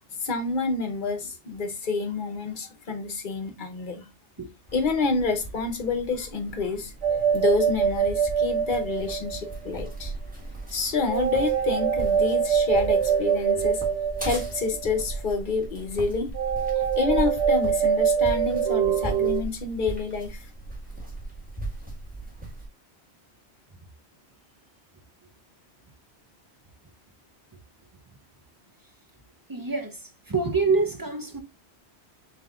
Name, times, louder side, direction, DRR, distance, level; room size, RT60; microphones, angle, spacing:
voice 1, 0.1-4.1 4.7-6.9 7.3-10.1 10.7-13.8 14.2-16.3 17.0-20.5, left 4 dB, 50° left, 0.9 m, -28 dB
sound 1, 4.7-22.7, right 2 dB, 10° right, 1.5 m, -38 dB
sound 2, 7.0-9.7 11.1-15.0 16.3-19.4, right 7 dB, 80° right, 0.9 m, -24 dB
voice 2, 29.5-31.4, right 4 dB, 30° right, 0.4 m, -26 dB
7.1 x 2.7 x 2.3 m
omnidirectional pair, 1.1 m